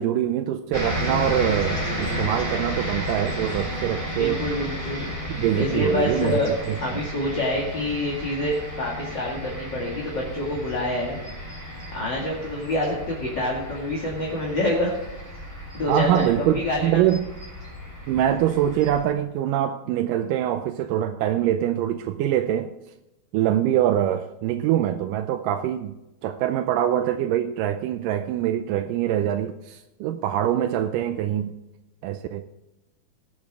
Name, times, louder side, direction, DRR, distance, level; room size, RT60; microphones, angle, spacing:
voice 1, 0.0-4.4 5.3-6.8 15.9-17.3 18.1-22.7 23.3-25.9 26.2-31.5 32.0-32.5, right 11 dB, 85° right, 2.2 m, -24 dB
sound 1, 0.7-19.0, equal, 5° left, 3.8 m, -33 dB
voice 2, 4.1-5.1 5.6-6.5 6.8-11.2 11.9-14.9 15.7-17.0, left 1 dB, 35° left, 2.6 m, -26 dB
19.5 x 8.2 x 3.6 m
omnidirectional pair, 3.8 m